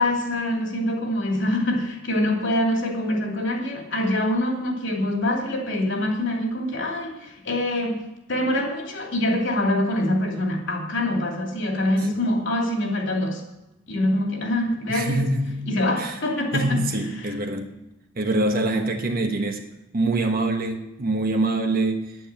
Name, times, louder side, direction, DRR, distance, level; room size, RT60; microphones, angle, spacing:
voice 1, 0.0-13.4 13.9-15.3 15.7-16.8 17.2-17.3, left 1 dB, 60° left, 1 dB, 2.8 m, -25 dB
voice 2, 14.9-16.2 16.5-17.7 18.1-19.6 19.9-22.2, right 2 dB, 45° right, 4 dB, 1.1 m, -25 dB
10.0 x 9.3 x 7.4 m, 0.93 s
head